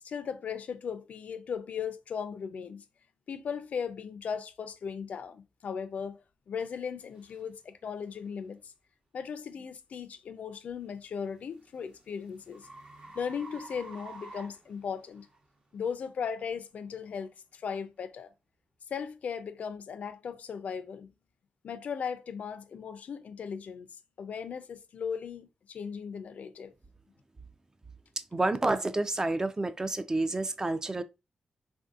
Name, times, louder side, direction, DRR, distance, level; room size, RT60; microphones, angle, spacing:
voice 1, 0.0-2.8 3.3-8.7 9.1-12.7 13.1-15.3 15.7-18.3 18.9-21.1 21.6-23.9 24.2-26.7, left 6 dB, 75° left, 0.4 m, -37 dB
sound 1, 6.6-6.7 7.3-7.5 8.1-8.3 10.9-15.4, right 3 dB, 45° right, 0.8 m, -49 dB
voice 2, 28.3-31.0, right 2 dB, 25° right, 0.3 m, -29 dB
3.3 x 2.6 x 2.3 m
cardioid pair, 75°, 2 cm